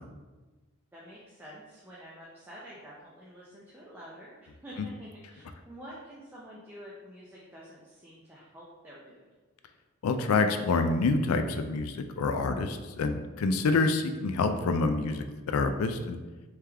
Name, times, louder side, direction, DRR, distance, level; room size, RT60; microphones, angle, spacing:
voice 1, 0.9-9.3, equal, 10° right, -7 dB, 0.4 m, -48 dB
voice 2, 10.0-16.2, left 3 dB, 90° left, 7 dB, 0.4 m, -27 dB
3.4 x 3.3 x 3.4 m, 1.2 s
head